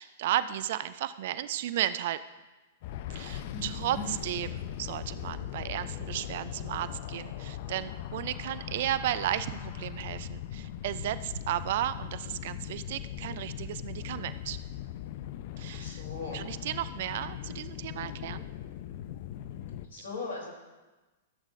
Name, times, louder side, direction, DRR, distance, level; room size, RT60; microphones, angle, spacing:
voice 1, 0.0-2.2 3.1-14.6 15.6-16.0 16.3-18.4, right 12 dB, 55° right, 14 dB, 0.4 m, -34 dB
sound 1, 2.8-19.9, left 11 dB, 50° left, 0.5 m, -40 dB
voice 2, 3.4-4.2 15.7-16.4 19.9-20.5, left 3 dB, 65° left, -1 dB, 3.1 m, -39 dB
15.0 x 8.0 x 2.6 m, 1.2 s
figure-of-eight pair, 105°, 0 cm